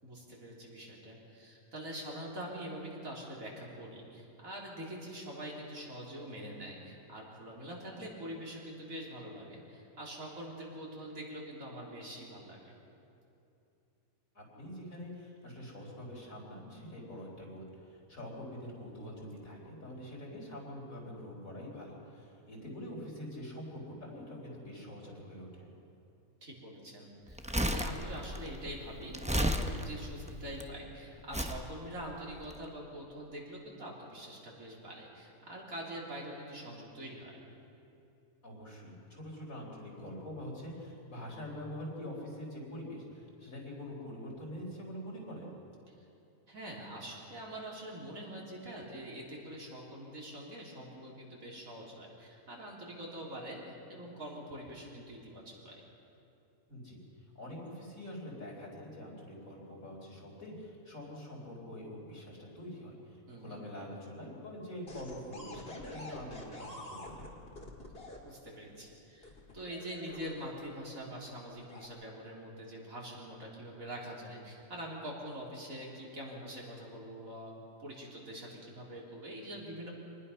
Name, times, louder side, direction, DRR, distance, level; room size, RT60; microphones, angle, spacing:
voice 1, 0.0-12.7 26.4-37.4 46.5-55.8 63.3-63.6 68.0-77.5 77.8-79.9, right 1 dB, 65° right, -3 dB, 4.0 m, -44 dB
voice 2, 14.3-25.7 38.4-45.7 56.7-57.0 57.3-67.3, equal, 65° left, -2 dB, 4.6 m, -45 dB
Crumpling crinkling, 27.3-30.6 31.3-31.6 32.4-32.5, equal, 5° right, 0.7 m, -33 dB
sound 1, 64.9-68.2 69.2-70.9 71.5-71.9, left 1 dB, 40° left, 2.4 m, -47 dB
25.5 x 19.5 x 5.7 m, 2.7 s
omnidirectional pair, 1.5 m